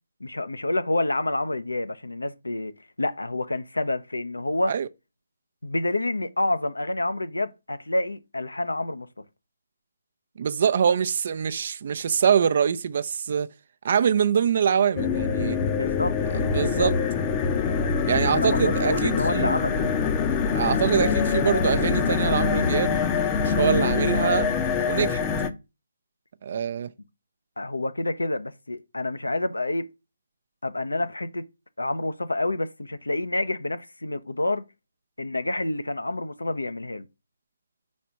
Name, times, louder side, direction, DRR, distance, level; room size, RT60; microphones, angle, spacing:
voice 1, 0.2-2.7 3.0-4.7 5.6-9.1 15.7-16.2 16.6-16.9 18.1-19.8 27.6-29.9 30.6-31.4 31.8-34.6 35.2-37.0, left 2 dB, 90° left, 0.7 m, -28 dB
voice 2, 10.4-13.5 13.8-15.6 16.3-17.0 18.1-19.6 20.5-23.0 23.3-24.5 24.9-25.3 26.4-26.9, right 7 dB, 50° right, 0.6 m, -24 dB
sound 1, 15.0-25.5, left 6 dB, 20° left, 0.6 m, -24 dB
5.1 x 4.2 x 5.8 m
figure-of-eight pair, 145°, 0 cm